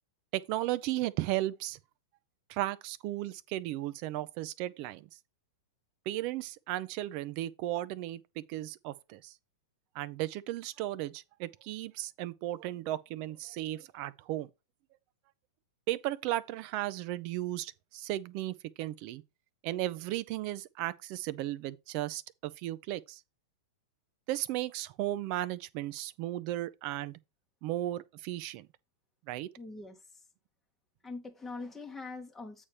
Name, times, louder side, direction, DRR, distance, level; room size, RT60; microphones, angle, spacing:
voice 1, 0.3-1.8 2.5-5.1 6.1-9.3 9.9-14.5 15.9-19.2 19.6-23.2 24.3-27.2 27.6-28.7 29.3-29.5, right 15 dB, 45° right, 0.6 m, -35 dB
voice 2, 29.6-30.2 31.0-32.7, left 3 dB, 5° left, 1.1 m, -43 dB
8.5 x 3.3 x 5.6 m
hypercardioid pair, 130°, 2 cm